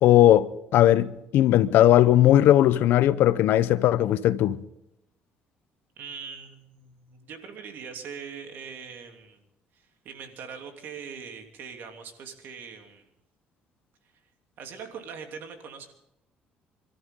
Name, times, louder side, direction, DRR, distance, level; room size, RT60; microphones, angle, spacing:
voice 1, 0.0-4.6, left 13 dB, 75° left, 0.7 m, -18 dB
voice 2, 6.0-9.4 9.7-13.1 14.6-15.9, right 6 dB, 70° right, 3.0 m, -41 dB
27.0 x 13.5 x 3.8 m
cardioid pair, 90°, 4 cm